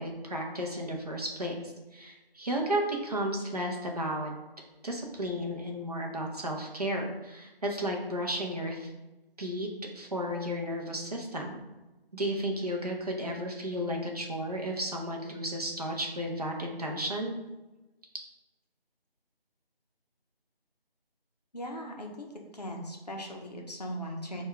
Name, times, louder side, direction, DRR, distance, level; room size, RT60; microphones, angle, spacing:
voice 1, 0.0-4.3 4.8-8.9 9.4-9.7 9.9-11.6 12.1-17.3, equal, 40° right, 0 dB, 0.7 m, -33 dB
voice 2, 21.5-22.3 22.5-24.4, equal, 40° left, 1 dB, 0.6 m, -39 dB
5.0 x 2.3 x 3.5 m, 1.1 s
figure-of-eight pair, 165°, 30 cm